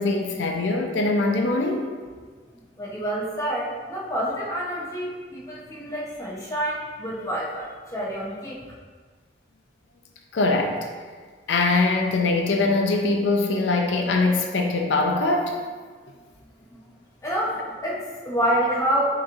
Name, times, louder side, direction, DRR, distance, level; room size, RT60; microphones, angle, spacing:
voice 1, 0.0-1.9 10.3-10.8 11.5-15.5, left 3 dB, 90° left, 2 dB, 0.5 m, -22 dB
voice 2, 2.8-8.6 16.7-16.8 17.2-19.1, right 1 dB, 20° left, -5 dB, 0.8 m, -27 dB
6.3 x 3.0 x 2.5 m, 1.5 s
head